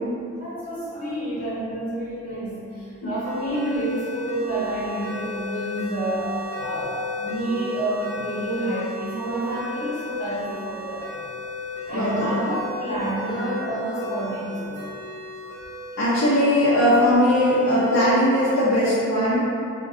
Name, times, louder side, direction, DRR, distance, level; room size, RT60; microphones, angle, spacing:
voice 1, 0.4-11.1 11.8-14.8, right 1 dB, 40° left, -9 dB, 1.0 m, -29 dB
sound 1, 3.2-18.8, left 1 dB, 15° left, 0.5 m, -35 dB
voice 2, 11.9-12.6 16.0-19.4, equal, 60° left, -11 dB, 0.5 m, -19 dB
2.4 x 2.2 x 3.6 m, 2.5 s
head